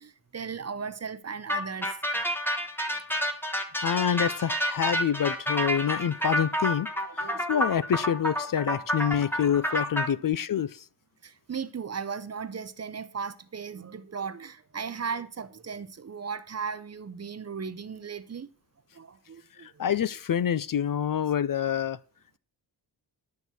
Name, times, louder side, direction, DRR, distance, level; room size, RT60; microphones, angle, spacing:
voice 1, 0.0-2.0 7.0-7.5 11.2-18.5 18.9-19.7, right 6 dB, 35° right, 0.7 m, -36 dB
sound 1, 1.5-10.1, equal, 5° left, 1.2 m, -29 dB
voice 2, 3.8-6.9 7.2-10.8 19.6-22.0, left 9 dB, 50° left, 0.5 m, -27 dB
11.5 x 4.5 x 8.1 m
wide cardioid pair, 160°, 42 cm